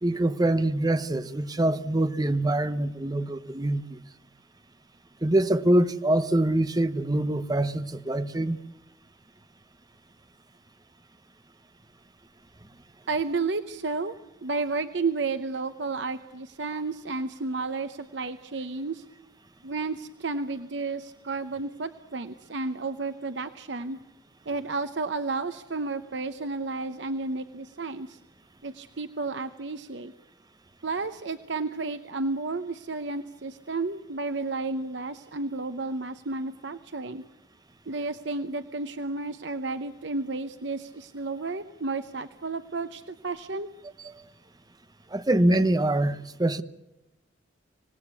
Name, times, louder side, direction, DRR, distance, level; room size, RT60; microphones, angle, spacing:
voice 1, 0.0-4.0 5.2-8.6 44.0-44.1 45.1-46.6, right 1 dB, 20° right, 1.0 m, -24 dB
voice 2, 13.1-14.1 14.4-19.0 19.6-24.0 24.5-28.2 28.6-30.1 30.8-37.2 37.9-43.7, right 3 dB, 70° right, 0.9 m, -32 dB
26.0 x 19.0 x 8.3 m
head